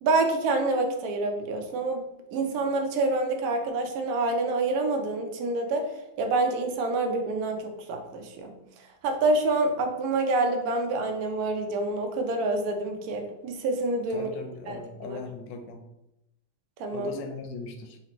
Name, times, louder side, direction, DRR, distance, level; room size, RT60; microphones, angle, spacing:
voice 1, 0.0-2.0 2.3-5.9 6.2-8.5 9.0-14.3 14.7-15.2 16.8-17.1, right 2 dB, 75° right, 4 dB, 0.8 m, -27 dB
voice 2, 14.1-15.8 16.9-18.0, left 4 dB, 75° left, 4 dB, 1.1 m, -39 dB
4.2 x 2.8 x 2.9 m, 0.87 s
omnidirectional pair, 2.2 m